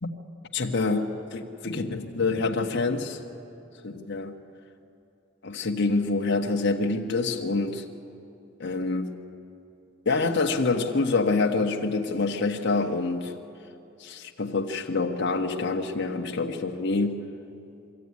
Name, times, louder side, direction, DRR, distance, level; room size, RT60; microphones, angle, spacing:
voice 1, 0.5-3.2 3.8-4.4 5.4-7.8 8.6-9.1 10.0-13.3 14.0-17.2, left 3 dB, 60° left, 2 dB, 1.3 m, -26 dB
23.5 x 14.0 x 9.6 m, 2.7 s
head